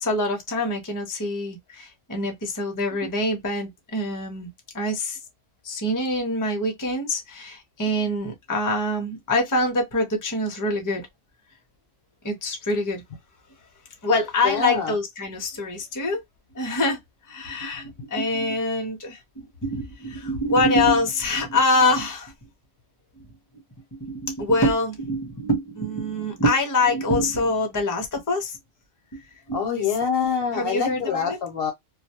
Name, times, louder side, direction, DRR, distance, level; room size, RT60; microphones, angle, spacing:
voice 1, 0.0-4.5 4.7-5.2 5.6-11.1 12.2-13.0 14.0-16.2 16.5-17.0 17.3-22.3 23.9-28.6 29.1-29.2 29.5-29.9 30.5-31.4, left 1 dB, 20° left, 0.6 m, -25 dB
voice 2, 14.4-14.9 29.5-31.7, left 6 dB, 60° left, 0.8 m, -25 dB
2.3 x 2.1 x 2.7 m
omnidirectional pair, 1.3 m